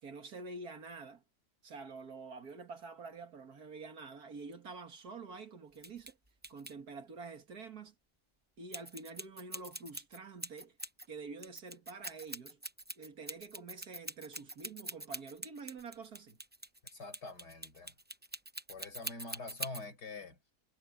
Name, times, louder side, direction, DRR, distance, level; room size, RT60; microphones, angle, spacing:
voice 1, 0.0-1.2 1.6-6.2 6.5-7.9 8.6-10.8 11.1-12.6 13.0-16.4, right 4 dB, 65° right, 2.4 m, -47 dB
sound 1, 5.8-6.1 6.4-6.7 8.7-11.1 11.4-19.8, right 1 dB, 10° right, 0.4 m, -44 dB
voice 2, 16.9-17.9 18.7-20.4, left 3 dB, 75° left, 5.1 m, -45 dB
omnidirectional pair, 1.8 m